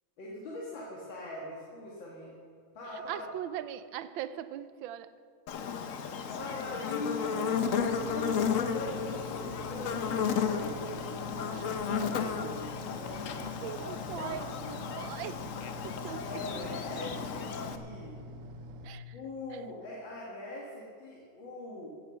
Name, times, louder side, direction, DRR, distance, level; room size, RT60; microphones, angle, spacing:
voice 1, 0.2-2.4 2.7-3.3 5.6-5.9 6.3-7.4 7.8-10.7 11.9-13.8 14.1-14.9 16.3-18.2 19.1-21.9, left 2 dB, 75° left, -4 dB, 2.4 m, -42 dB
voice 2, 3.1-5.1 11.5-11.6 13.6-14.4 14.7-15.5 15.8-16.4 18.8-19.1, right 11 dB, 80° right, 14 dB, 1.4 m, -40 dB
Buzz, 5.5-17.8, left 6 dB, 60° left, 0.9 m, -33 dB
Computer Fan and Drives, 7.5-18.9, equal, 55° right, 0.9 m, -46 dB
16.0 x 7.9 x 6.9 m, 2.3 s
omnidirectional pair, 2.1 m